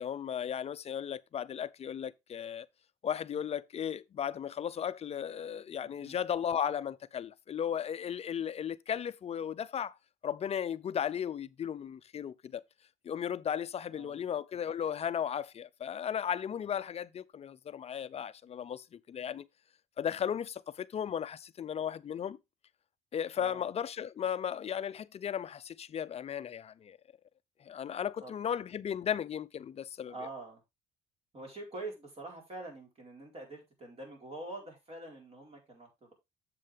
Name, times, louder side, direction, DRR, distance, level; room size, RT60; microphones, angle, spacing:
voice 1, 0.0-2.7 3.0-9.9 10.2-12.6 13.0-19.5 20.0-22.4 23.1-27.0 27.6-30.1, left 8 dB, 40° left, 0.5 m, -35 dB
voice 2, 5.8-6.2 13.9-14.2 23.4-23.7 28.2-28.3 30.1-30.6 31.3-36.1, right 2 dB, 35° right, 4.5 m, -45 dB
7.6 x 7.4 x 3.4 m
cardioid pair, 110°, 17 cm